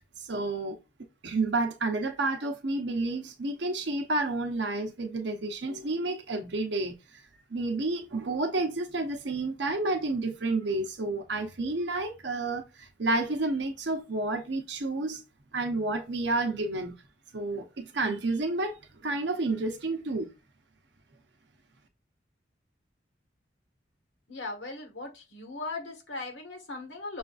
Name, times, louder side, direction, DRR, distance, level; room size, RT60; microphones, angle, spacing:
voice 1, 0.2-0.8 1.2-6.9 7.5-15.2 15.5-16.9 17.3-20.3, right 2 dB, 70° right, 0.8 m, -30 dB
voice 2, 24.3-27.2, left 3 dB, 85° left, 1.3 m, -38 dB
6.3 x 2.5 x 2.4 m
head